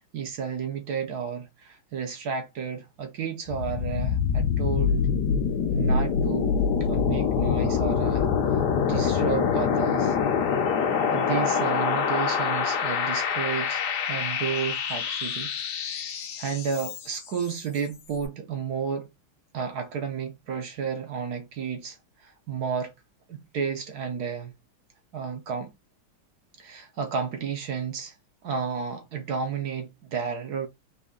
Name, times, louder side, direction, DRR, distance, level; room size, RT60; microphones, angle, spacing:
voice 1, 0.1-5.1 5.7-6.6 6.9-8.3 8.8-10.2 11.1-15.5 16.4-19.1 19.5-22.9 23.3-24.5 25.1-25.7 26.6-28.2 28.4-30.7, right 6 dB, 65° right, 1.2 m, -32 dB
sound 1, 3.5-17.3, left 6 dB, 65° left, 1.2 m, -25 dB
4.1 x 2.8 x 3.7 m
omnidirectional pair, 2.1 m